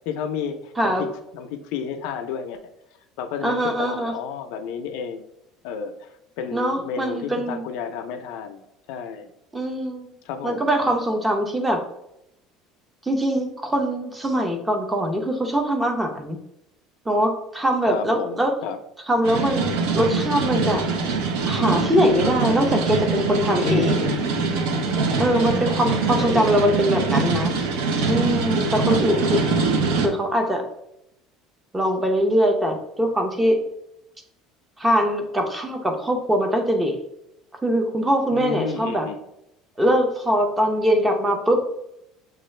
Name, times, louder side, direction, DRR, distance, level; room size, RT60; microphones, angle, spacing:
voice 1, 0.1-1.1 1.3-2.6 3.2-5.2 5.6-6.1 6.4-8.6 8.9-9.3 10.2-10.7 17.8-18.8 23.6-24.2 25.3-27.1 28.9-29.3 38.3-39.2, left 6 dB, 70° left, 5 dB, 0.4 m, -31 dB
voice 2, 0.8-1.1 3.4-4.1 6.5-7.6 9.5-10.1 10.4-11.8 13.0-16.4 17.1-18.5 19.1-20.8 21.5-24.1 25.2-27.5 28.1-29.4 30.0-30.7 31.7-33.6 34.8-37.0 37.6-39.1 39.8-41.6, equal, 10° right, 3 dB, 0.5 m, -22 dB
sound 1, 19.2-30.1, right 4 dB, 85° right, 0.7 m, -23 dB
6.6 x 2.4 x 3.1 m, 0.81 s
cardioid pair, 170°, 0 cm